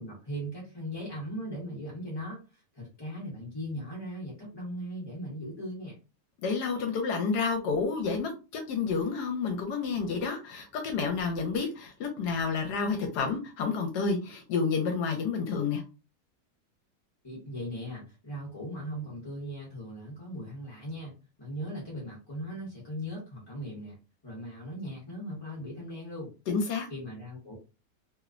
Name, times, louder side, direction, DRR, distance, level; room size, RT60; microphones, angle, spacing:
voice 1, 0.0-6.0 17.2-24.0 24.2-26.3 26.9-27.6, equal, 20° left, -5 dB, 0.6 m, -39 dB
voice 2, 6.4-15.8 26.5-26.9, left 5 dB, 80° left, 4 dB, 1.1 m, -30 dB
3.0 x 2.0 x 2.4 m, 0.30 s
omnidirectional pair, 1.8 m